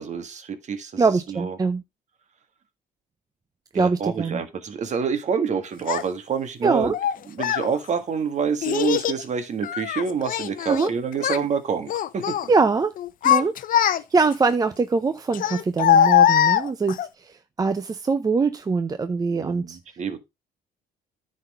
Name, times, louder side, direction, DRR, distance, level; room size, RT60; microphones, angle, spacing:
voice 1, 0.0-1.6 3.7-6.9 7.3-12.4 19.3-20.2, right 6 dB, 45° right, 1.7 m, -27 dB
voice 2, 1.0-1.8 3.7-4.4 6.6-6.9 10.7-10.9 12.5-12.9 13.2-13.6 13.9-19.8, right 4 dB, 20° right, 0.7 m, -23 dB
Child speech kid speaking, 5.9-6.0 6.9-7.7 8.6-9.2 9.6-10.9 11.2-11.5 11.9-12.5 13.0-14.3 15.3-17.1, left 10 dB, 55° left, 0.8 m, -21 dB
9.9 x 4.3 x 5.3 m
cardioid pair, 110°, 17 cm